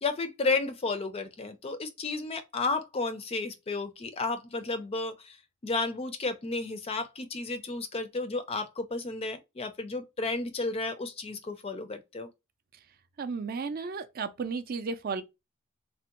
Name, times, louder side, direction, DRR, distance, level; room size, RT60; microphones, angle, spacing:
voice 1, 0.0-5.4 5.6-12.3, left 3 dB, 25° left, 0.4 m, -32 dB
voice 2, 13.2-15.2, right 4 dB, 45° right, 0.4 m, -33 dB
3.4 x 2.1 x 2.9 m
head